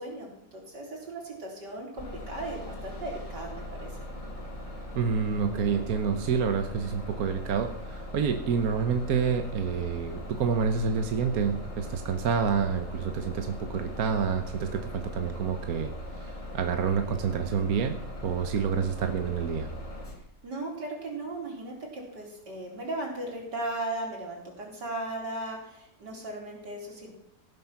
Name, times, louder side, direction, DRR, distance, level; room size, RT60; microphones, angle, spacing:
voice 1, 0.0-3.9 20.4-27.1, right 2 dB, 80° right, -1 dB, 4.6 m, -37 dB
Bus, 2.0-20.1, left 1 dB, 20° left, 2.5 m, -40 dB
voice 2, 4.9-15.9 16.2-18.0 18.2-19.7, right 6 dB, 60° right, 6 dB, 1.4 m, -28 dB
17.5 x 9.4 x 5.9 m, 0.74 s
omnidirectional pair, 1.8 m